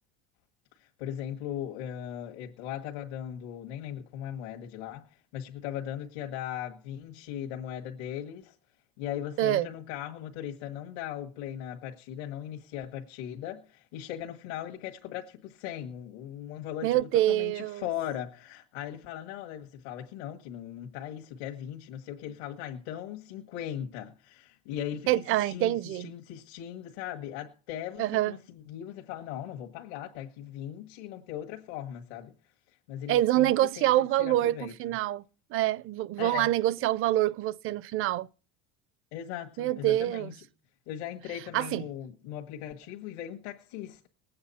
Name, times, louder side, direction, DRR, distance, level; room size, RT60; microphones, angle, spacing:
voice 1, 0.8-8.5 9.0-32.3 32.9-34.7 36.2-36.5 39.1-40.3 40.9-44.1, left 10 dB, 85° left, 1.7 m, -39 dB
voice 2, 16.8-17.8 25.1-26.1 28.0-28.3 33.1-35.2 35.5-38.3 39.6-40.3 41.5-41.8, right 14 dB, 45° right, 0.5 m, -26 dB
20.5 x 8.7 x 4.2 m
cardioid pair, 130°, 31 cm